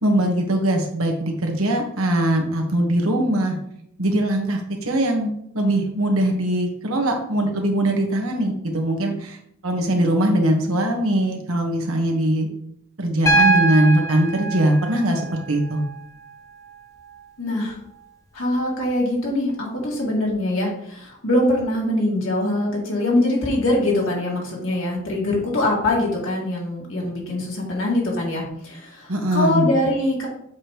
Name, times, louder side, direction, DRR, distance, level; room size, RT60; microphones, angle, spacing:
voice 1, 0.0-3.5 4.0-9.4 9.6-12.5 13.0-15.8 29.1-29.7, right 1 dB, 90° right, 3 dB, 1.4 m, -21 dB
Piano, 13.3-17.3 18.8-18.9, right 3 dB, 15° left, 0.6 m, -24 dB
voice 2, 17.4-17.8 18.3-30.3, left 1 dB, 70° left, -3 dB, 2.3 m, -23 dB
7.4 x 3.0 x 5.0 m, 0.72 s
head